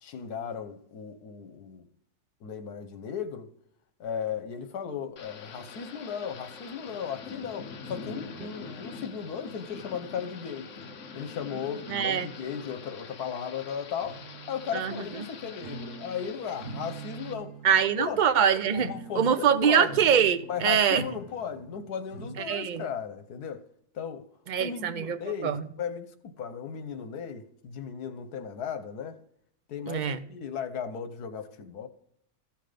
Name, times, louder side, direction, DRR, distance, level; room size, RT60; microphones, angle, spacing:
voice 1, 0.0-1.8 2.4-3.5 4.0-10.7 11.1-14.2 14.5-17.5 18.0-18.2 18.7-20.0 20.5-23.6 23.9-24.2 24.6-29.2 29.7-31.9, left 7 dB, 80° left, 1.5 m, -36 dB
sound 1, 4.3-4.4 5.2-5.3 5.5-5.7 6.6-6.7 6.9-7.1 9.2-10.0 10.4-11.1 12.2-12.3 12.9-13.0 13.7-16.3 16.5-22.4, right 3 dB, 75° right, 4.3 m, -45 dB
Thunder / Rain, 5.2-17.3, left 5 dB, 55° left, 1.2 m, -45 dB
voice 2, 11.9-12.3 14.7-15.0 17.6-21.0 22.5-22.9 24.5-25.6 29.9-30.2, right 8 dB, 50° right, 0.5 m, -24 dB
15.0 x 5.9 x 5.1 m
omnidirectional pair, 1.7 m